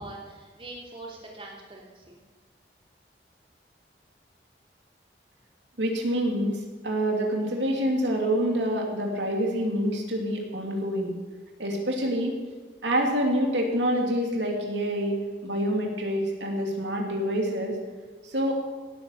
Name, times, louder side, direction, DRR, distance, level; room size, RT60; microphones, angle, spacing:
voice 1, 0.0-2.2, right 2 dB, 30° right, -2 dB, 3.2 m, -42 dB
voice 2, 5.8-6.6 6.8-11.1 11.6-12.3 12.8-17.8 18.2-18.5, equal, 85° right, 1 dB, 3.0 m, -26 dB
17.5 x 9.0 x 6.7 m, 1.4 s
head